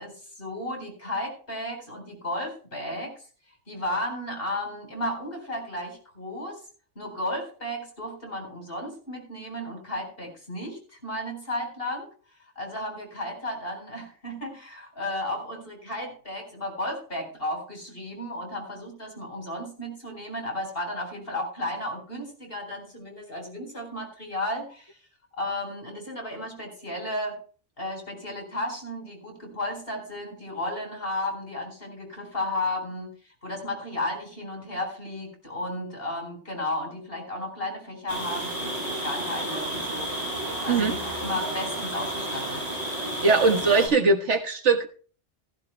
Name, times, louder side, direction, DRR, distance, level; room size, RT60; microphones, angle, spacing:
voice 1, 0.0-3.2 3.7-6.6 7.0-12.1 12.6-25.0 25.4-27.4 27.8-42.7, left 1 dB, 50° left, 2 dB, 4.5 m, -34 dB
sound 1, 38.1-43.9, right 1 dB, 30° right, 6.9 m, -31 dB
voice 2, 43.2-44.9, right 4 dB, 70° right, 3 dB, 1.6 m, -21 dB
15.5 x 15.0 x 2.2 m, 0.41 s
omnidirectional pair, 1.2 m